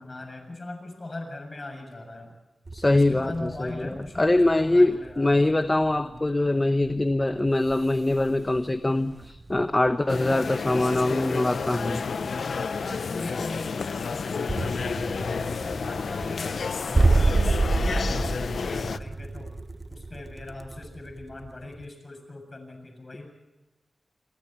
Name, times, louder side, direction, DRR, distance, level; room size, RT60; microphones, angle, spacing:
voice 1, 0.0-2.3 2.9-5.4 6.0-6.2 12.8-15.2 15.6-19.5 19.9-23.3, left 2 dB, 35° left, 5 dB, 7.2 m, -40 dB
sound 1, 2.6-10.2 10.5-21.9, right 3 dB, 35° right, 1.0 m, -30 dB
voice 2, 2.7-12.0, left 2 dB, 20° left, 9 dB, 0.9 m, -23 dB
sound 2, 10.1-19.0, left 5 dB, 80° left, 0.8 m, -30 dB
28.0 x 23.5 x 4.4 m, 1.1 s
wide cardioid pair, 105°, 0 cm